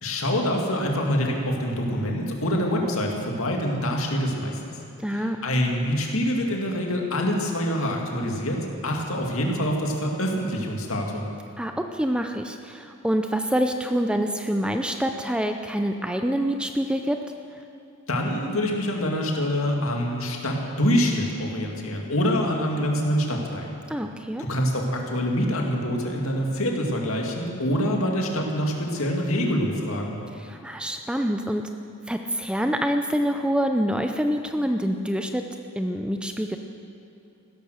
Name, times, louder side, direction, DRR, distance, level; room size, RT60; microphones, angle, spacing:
voice 1, 0.0-4.8 5.1-11.3 18.1-23.7 24.4-30.2, equal, 70° left, 0 dB, 2.3 m, -25 dB
voice 2, 5.0-5.4 11.6-17.2 23.9-24.4 30.4-31.6 32.1-35.4 35.8-36.6, equal, 5° right, 5 dB, 0.5 m, -26 dB
16.0 x 13.0 x 6.5 m, 2.8 s
head